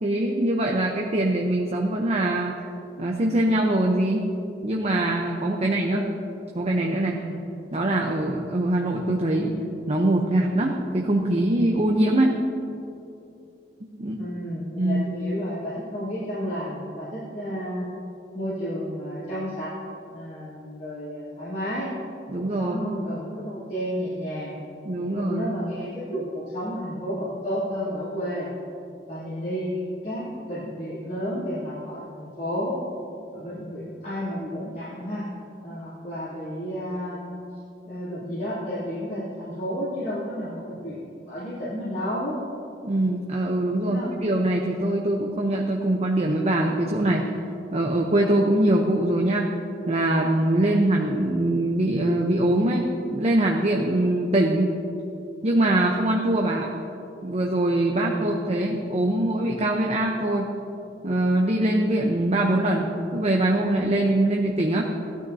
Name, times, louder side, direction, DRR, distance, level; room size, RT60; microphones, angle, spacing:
voice 1, 0.0-2.6 3.0-4.3 4.6-6.0 6.5-7.2 7.7-9.5 9.9-12.4 14.0-14.2 14.8-15.1 22.3-22.8 24.8-25.5 42.8-47.3 47.7-49.5 49.9-54.7 55.4-56.7 57.2-60.5 61.0-64.8, right 1 dB, 35° right, 0 dB, 0.7 m, -23 dB
voice 2, 5.6-6.0 7.1-7.4 14.2-17.8 18.3-19.7 20.1-21.9 22.4-24.5 25.1-28.5 29.1-29.7 30.0-32.8 33.3-35.2 35.6-37.4 37.9-42.4 43.8-44.1 50.6-50.8 58.0-58.3, equal, 55° left, -11 dB, 3.0 m, -32 dB
16.0 x 12.0 x 2.7 m, 2.7 s
head